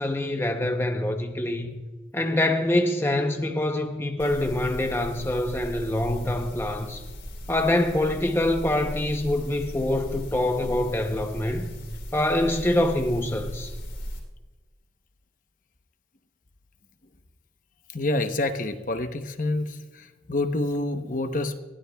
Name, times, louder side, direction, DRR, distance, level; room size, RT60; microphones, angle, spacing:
voice 1, 0.0-1.8 2.1-7.0 7.5-11.7 12.1-13.7, left 1 dB, 15° left, 4 dB, 0.7 m, -25 dB
sound 1, 4.2-14.2, equal, 85° left, 3.2 m, -37 dB
voice 2, 17.9-21.5, left 2 dB, 45° left, 7 dB, 0.9 m, -27 dB
21.0 x 15.5 x 2.3 m, 1.3 s
head